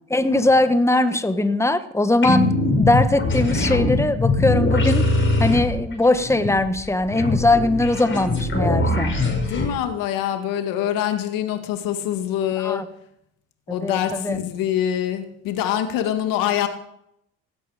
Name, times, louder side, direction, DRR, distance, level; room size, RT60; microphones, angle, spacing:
voice 1, 0.1-5.1 5.4-9.2 12.6-12.8 13.7-14.4, left 2 dB, 10° left, 10 dB, 1.4 m, -20 dB
sound 1, 2.2-9.7, left 2 dB, 35° left, 6.0 m, -22 dB
voice 2, 9.5-12.9 13.7-16.7, left 10 dB, 75° left, 7 dB, 2.1 m, -24 dB
17.0 x 12.5 x 5.0 m, 0.75 s
supercardioid pair, 70°, 34 cm